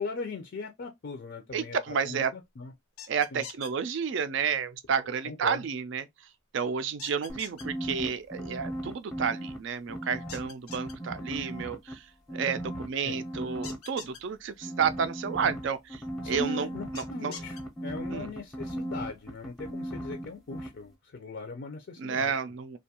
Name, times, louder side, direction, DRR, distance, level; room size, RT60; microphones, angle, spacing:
voice 1, 0.0-1.8 2.0-2.7 3.3-3.4 5.2-5.6 13.0-13.2 16.2-22.4, left 3 dB, 55° left, 0.4 m, -39 dB
voice 2, 1.5-2.3 3.1-6.0 6.5-12.0 12.3-16.7 16.9-17.3 18.1-18.3 22.0-22.8, right 6 dB, 55° right, 0.3 m, -31 dB
sound 1, 3.0-3.7 7.0-7.6 10.3-10.9 13.6-14.2 17.0-17.6, left 7 dB, 90° left, 0.8 m, -43 dB
sound 2, 7.3-9.6 9.9-11.9 12.3-13.8 14.6-20.3 20.5-20.7, right 1 dB, ahead, 0.6 m, -37 dB
2.6 x 2.2 x 2.8 m
head